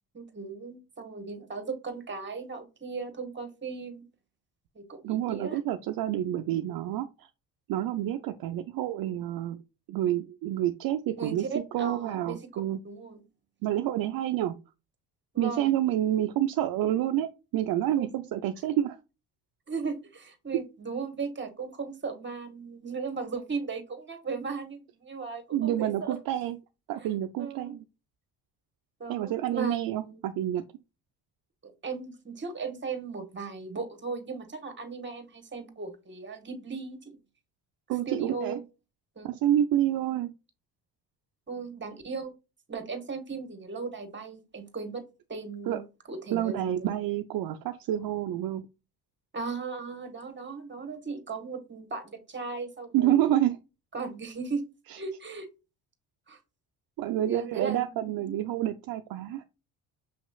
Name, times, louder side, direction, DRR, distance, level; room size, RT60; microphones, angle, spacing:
voice 1, 0.1-4.0 4.7-5.6 11.2-13.2 15.3-15.8 18.0-18.1 19.7-26.2 27.0-27.1 27.4-27.8 29.0-30.2 31.6-37.2 38.1-38.6 39.1-39.4 41.5-42.3 42.7-45.0 45.3-46.9 49.3-53.3 53.9-54.6 54.9-55.5 56.3-56.4 57.2-58.3, right 4 dB, 25° right, 8 dB, 1.3 m, -37 dB
voice 2, 5.0-7.3 7.7-9.6 9.9-11.5 11.7-12.8 13.6-14.6 15.4-19.0 25.5-26.6 26.9-27.8 29.1-30.6 37.9-38.6 39.2-40.3 45.7-45.8 46.3-48.6 52.9-53.6 54.9-55.0 57.0-59.4, right 12 dB, 60° right, 6 dB, 0.5 m, -28 dB
6.3 x 3.0 x 2.3 m, 0.29 s
supercardioid pair, 70°, 42 cm